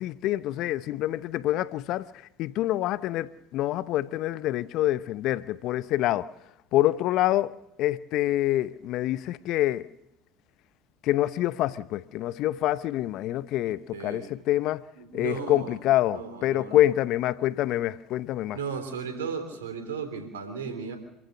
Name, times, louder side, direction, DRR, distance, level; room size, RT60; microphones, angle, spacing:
voice 1, 0.0-2.1 2.4-6.3 6.7-9.9 11.0-14.8 15.1-18.6, left 14 dB, 60° left, 0.7 m, -26 dB
voice 2, 13.6-14.3 15.0-15.8 16.1-16.8 18.5-21.0, right 6 dB, 80° right, 3.5 m, -35 dB
26.5 x 15.0 x 6.7 m
hypercardioid pair, 70°, 0 cm